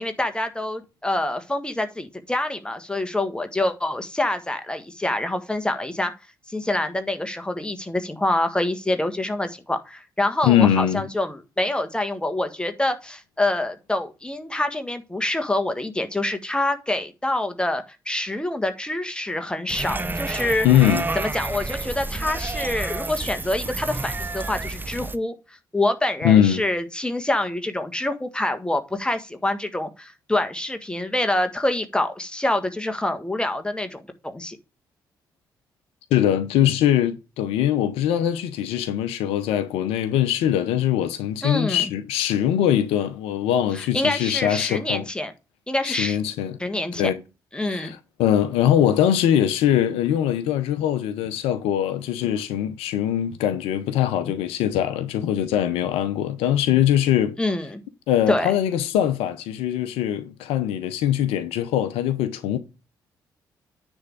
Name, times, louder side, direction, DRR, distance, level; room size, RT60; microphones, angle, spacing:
voice 1, 0.0-6.1 6.5-20.7 21.1-25.3 25.7-34.6 41.4-41.9 43.7-45.3 45.7-46.2 46.6-47.1 47.5-47.9 57.4-57.8 58.3-58.5, left 1 dB, 10° left, 1.5 m, -26 dB
voice 2, 10.4-11.1 20.6-21.0 26.2-26.6 36.1-45.1 45.8-46.6 47.0-47.2 47.7-57.4 58.1-62.6, left 10 dB, 65° left, 0.7 m, -22 dB
sound 1, 19.7-25.2, right 2 dB, 20° right, 0.7 m, -30 dB
9.6 x 3.6 x 6.7 m
figure-of-eight pair, 40°, 11 cm